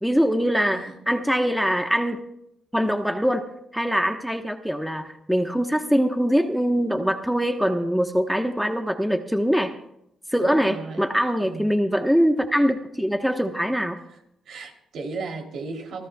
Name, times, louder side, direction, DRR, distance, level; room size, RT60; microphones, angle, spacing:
voice 1, 0.0-2.2 2.7-9.7 10.3-14.0, equal, ahead, 5 dB, 1.1 m, -23 dB
voice 2, 10.4-11.1 11.4-11.6 14.5-16.1, right 3 dB, 70° right, 3 dB, 3.2 m, -35 dB
27.5 x 14.0 x 2.3 m, 0.78 s
cardioid pair, 90°, 0 cm